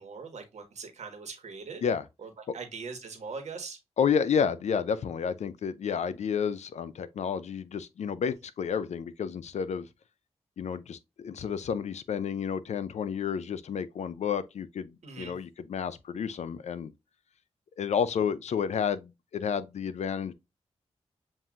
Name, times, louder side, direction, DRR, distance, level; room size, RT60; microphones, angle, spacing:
voice 1, 0.0-1.8 2.2-3.8 15.0-15.4, right 5 dB, 75° right, 1.4 m, -41 dB
voice 2, 4.0-9.9 10.6-16.9 17.8-20.3, left 7 dB, 75° left, 0.5 m, -30 dB
7.4 x 2.6 x 2.4 m
cardioid pair, 60°, 12 cm